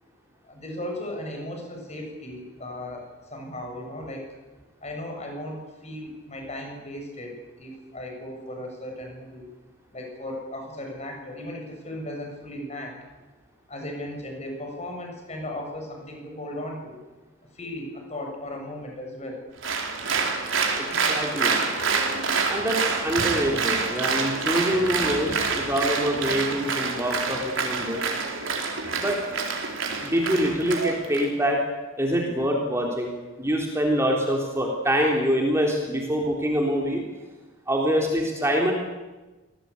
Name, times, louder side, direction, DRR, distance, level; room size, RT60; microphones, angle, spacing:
voice 1, 0.4-4.3 4.8-9.5 9.9-13.0 13.7-17.0 17.5-19.4, left 1 dB, 30° left, 2 dB, 7.0 m, -36 dB
Applause, 19.6-31.2, right 4 dB, 65° right, 4.5 m, -27 dB
voice 2, 20.8-21.6 22.5-28.0 29.0-29.2 30.0-31.6 32.0-33.1 33.4-37.0 37.7-38.7, equal, 15° right, 0 dB, 3.5 m, -25 dB
27.5 x 19.0 x 8.4 m, 1.2 s
head